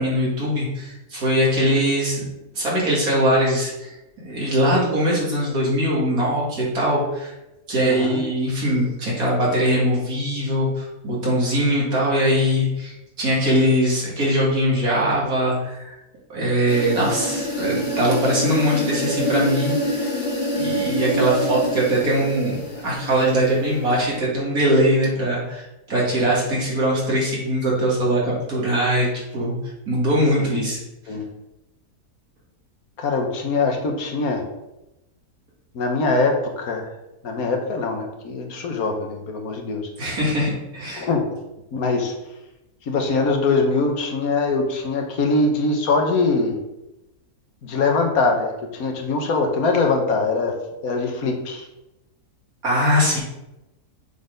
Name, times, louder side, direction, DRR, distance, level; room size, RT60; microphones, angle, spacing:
voice 1, 0.0-2.3 2.5-3.9 4.2-7.3 7.7-16.0 16.3-20.2 20.5-29.5 29.9-30.8 31.0-31.1 40.0-41.1 52.6-53.2, equal, 75° right, -5 dB, 2.7 m, -21 dB
voice 2, 7.8-8.2 30.4-30.7 31.1-31.2 33.0-34.4 35.7-36.9 37.2-39.9 41.0-41.2 41.7-42.1 42.9-46.6 47.6-50.5 50.8-51.6, left 3 dB, 75° left, 2 dB, 1.6 m, -22 dB
sound 1, 16.7-24.2, left 1 dB, 50° left, 2.0 m, -26 dB
7.0 x 4.2 x 5.1 m, 0.96 s
omnidirectional pair, 1.6 m